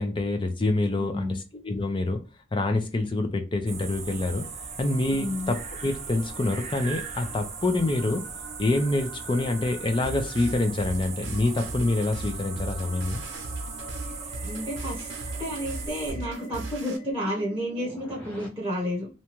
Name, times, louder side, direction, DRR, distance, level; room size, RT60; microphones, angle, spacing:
voice 1, 0.0-2.2 2.5-4.5 4.8-8.2 8.6-13.2, left 2 dB, 25° left, 5 dB, 0.5 m, -26 dB
voice 2, 1.0-1.4 5.1-5.5 14.4-15.1 15.4-19.1, equal, 15° right, -4 dB, 0.8 m, -31 dB
sound 1, 3.4-18.5, right 1 dB, 10° left, 1.2 m, -46 dB
sound 2, 3.7-16.1, right 5 dB, 40° right, 0.5 m, -39 dB
sound 3, 10.0-17.0, right 2 dB, 90° right, 0.7 m, -38 dB
2.7 x 2.2 x 2.9 m, 0.32 s
head